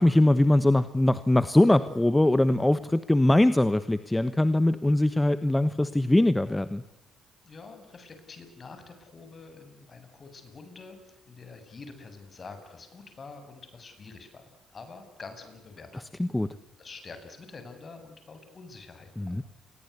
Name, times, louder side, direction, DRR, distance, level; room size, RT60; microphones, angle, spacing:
voice 1, 0.0-6.8 16.2-16.5 19.2-19.4, left 1 dB, 10° left, 13 dB, 1.2 m, -22 dB
voice 2, 7.4-14.4 14.7-16.0 16.8-19.4, left 4 dB, 40° left, 8 dB, 7.8 m, -46 dB
29.0 x 22.5 x 8.3 m, 1.0 s
cardioid pair, 90°, 0 cm